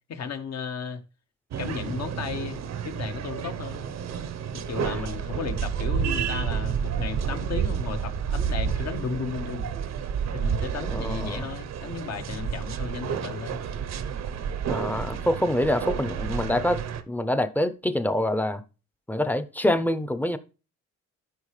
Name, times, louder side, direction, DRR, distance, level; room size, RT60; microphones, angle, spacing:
voice 1, 0.1-1.0 1.6-3.8 4.5-9.7 10.3-13.6 14.9-15.3, left 6 dB, 60° left, 1.3 m, -34 dB
sound 1, 1.5-17.0, right 7 dB, 60° right, 0.8 m, -30 dB
voice 2, 10.9-11.5 14.7-16.8 17.1-18.6 19.1-20.4, left 1 dB, 5° left, 0.7 m, -26 dB
12.5 x 4.9 x 3.2 m
cardioid pair, 90°, 30 cm